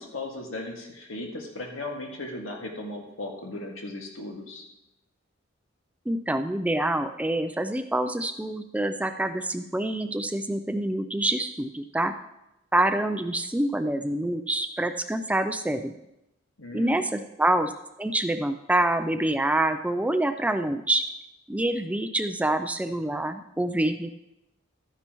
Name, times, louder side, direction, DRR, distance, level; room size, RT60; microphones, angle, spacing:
voice 1, 0.0-4.7 16.6-17.1, left 2 dB, 90° left, 0 dB, 2.0 m, -37 dB
voice 2, 6.1-12.1 12.7-15.9 16.7-17.7 18.0-21.0 21.5-24.1, right 1 dB, 5° right, 8 dB, 0.4 m, -26 dB
13.0 x 9.8 x 3.0 m, 0.88 s
head